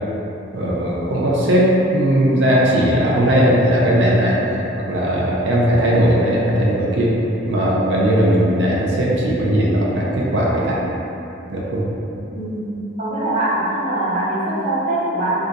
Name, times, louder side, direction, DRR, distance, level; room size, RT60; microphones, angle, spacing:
voice 1, 0.5-4.4 4.8-7.1 7.5-10.8 11.5-11.9, equal, 65° right, -5 dB, 0.5 m, -17 dB
voice 2, 12.3-12.7 13.0-15.5, right 1 dB, 40° right, -11 dB, 0.8 m, -22 dB
2.8 x 2.4 x 3.7 m, 2.9 s
head